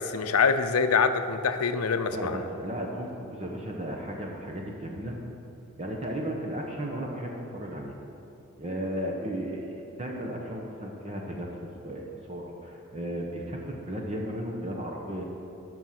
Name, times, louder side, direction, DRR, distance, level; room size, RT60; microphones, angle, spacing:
voice 1, 0.0-2.4, left 5 dB, 80° left, 9 dB, 0.6 m, -25 dB
voice 2, 2.1-5.2 5.8-7.9 8.6-11.5 11.8-15.2, equal, 30° right, 0 dB, 1.0 m, -35 dB
12.5 x 6.3 x 5.9 m, 2.8 s
head